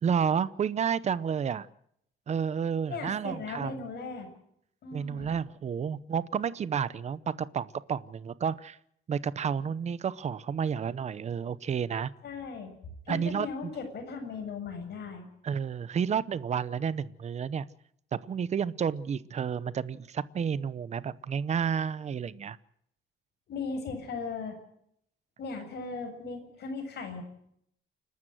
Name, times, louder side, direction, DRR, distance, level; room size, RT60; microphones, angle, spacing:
voice 1, 0.0-1.7 2.3-3.8 4.9-8.8 9.1-12.1 13.1-13.7 15.4-17.7 18.2-22.6, right 7 dB, 30° right, 18 dB, 0.7 m, -31 dB
voice 2, 2.9-4.3 4.8-5.3 12.2-12.7 13.1-15.3 23.5-24.6 25.4-27.2, left 4 dB, 50° left, 4 dB, 7.4 m, -37 dB
29.5 x 12.5 x 7.8 m, 0.71 s
cardioid pair, 160°, 21 cm